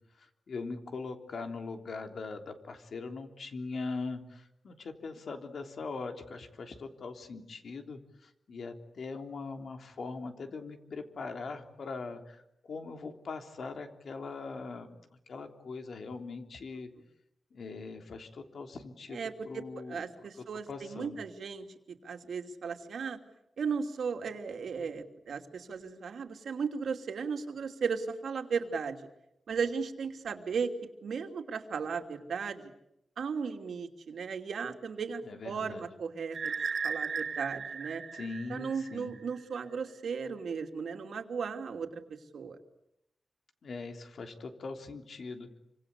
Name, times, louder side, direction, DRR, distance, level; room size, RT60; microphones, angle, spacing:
voice 1, 0.2-15.0 15.3-16.9 17.5-20.1 20.4-21.2 35.2-35.9 38.1-39.2 43.6-45.5, left 4 dB, 65° left, 5 dB, 3.3 m, -41 dB
voice 2, 19.1-21.6 22.0-23.2 23.6-29.0 29.5-30.7 31.0-32.7 33.2-36.5 36.8-38.0 38.5-42.0 42.3-42.6, right 5 dB, 80° right, 5 dB, 2.9 m, -36 dB
sound 1, 36.3-39.2, right 5 dB, 60° right, 2.4 m, -36 dB
28.0 x 25.5 x 8.3 m, 0.82 s
wide cardioid pair, 125°, 0 cm